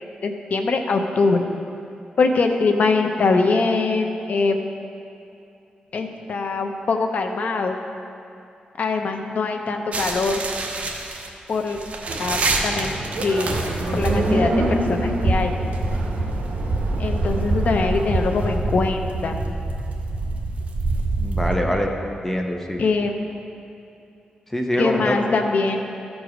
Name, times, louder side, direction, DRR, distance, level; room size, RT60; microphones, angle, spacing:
voice 1, 0.2-1.4 2.2-4.6 5.9-7.8 8.8-10.4 11.5-11.8 12.2-12.9 13.2-13.6 13.9-15.5 17.0-19.4 22.8-23.2 24.8-25.8, left 3 dB, 60° left, 4 dB, 0.8 m, -22 dB
sound 1, 9.9-21.5, right 2 dB, 55° right, 1.0 m, -26 dB
sound 2, 12.1-18.6, right 1 dB, 80° right, 1.0 m, -28 dB
voice 2, 21.2-21.9 22.2-22.8 24.5-25.3, equal, 10° left, 2 dB, 0.8 m, -24 dB
13.5 x 4.8 x 5.1 m, 2.7 s
wide cardioid pair, 105°, 3 cm